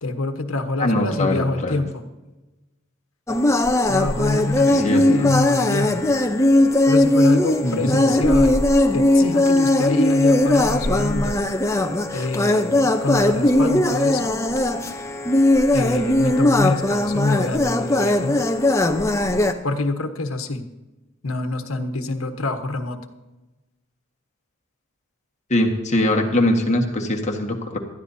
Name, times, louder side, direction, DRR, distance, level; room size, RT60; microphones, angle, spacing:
voice 1, 0.0-2.1 3.9-6.1 6.9-8.6 8.9-11.4 12.1-14.3 15.7-18.4 19.6-20.7 21.2-23.0, left 2 dB, 80° left, 6 dB, 1.2 m, -25 dB
voice 2, 0.8-1.8 4.7-5.3 7.6-7.9 25.5-27.8, left 1 dB, 35° left, 2 dB, 1.6 m, -22 dB
sound 1, 3.3-19.5, left 1 dB, 15° left, 0.7 m, -19 dB
18.5 x 13.0 x 2.8 m, 1.1 s
head